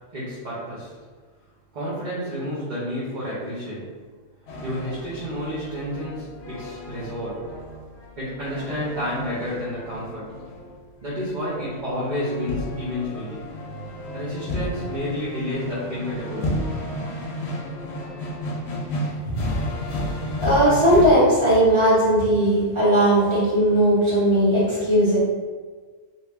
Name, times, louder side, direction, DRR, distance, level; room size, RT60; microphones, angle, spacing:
voice 1, 0.1-0.9 1.7-3.9 4.6-7.7 8.2-10.3 11.0-13.4 14.1-16.5 18.2-18.4, equal, 40° right, -10 dB, 0.9 m, -30 dB
sound 1, 4.5-21.1, left 1 dB, 60° left, 0.9 m, -32 dB
voice 2, 20.4-25.2, right 1 dB, 25° right, -9 dB, 1.3 m, -18 dB
2.8 x 2.7 x 3.3 m, 1.5 s
omnidirectional pair, 1.3 m